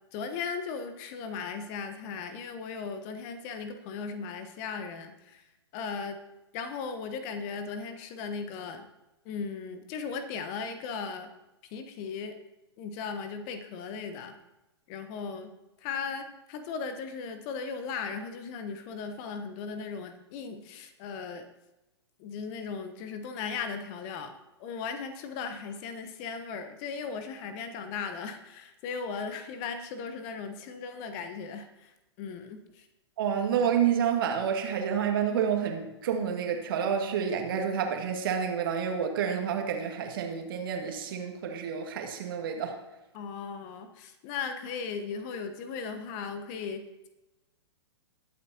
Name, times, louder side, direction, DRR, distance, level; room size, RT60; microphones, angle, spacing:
voice 1, 0.1-5.4 5.7-6.2 6.5-8.9 9.2-11.3 11.7-12.4 12.8-14.3 14.9-15.5 15.8-21.5 22.2-24.3 24.6-31.9 32.2-32.9 43.1-47.1, left 5 dB, 35° left, 8 dB, 1.2 m, -37 dB
voice 2, 33.2-42.8, right 7 dB, 55° right, 3 dB, 2.1 m, -29 dB
21.0 x 8.3 x 2.9 m, 0.99 s
figure-of-eight pair, 110°, 14 cm